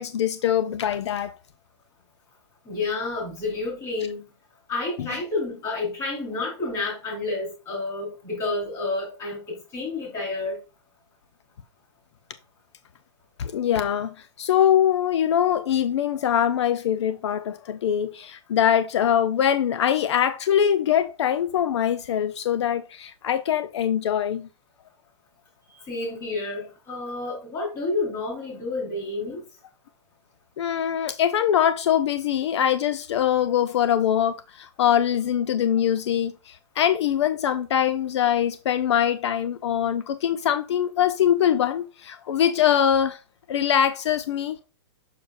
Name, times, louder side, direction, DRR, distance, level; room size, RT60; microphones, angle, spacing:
voice 1, 0.0-1.3 5.0-5.1 13.4-24.5 30.6-43.2 43.5-44.6, left 9 dB, 70° left, 0.6 m, -23 dB
voice 2, 2.6-4.2 4.7-10.6 25.7-29.4, left 3 dB, 20° left, 4.2 m, -30 dB
6.5 x 6.5 x 2.6 m
hypercardioid pair, 160°, 15 cm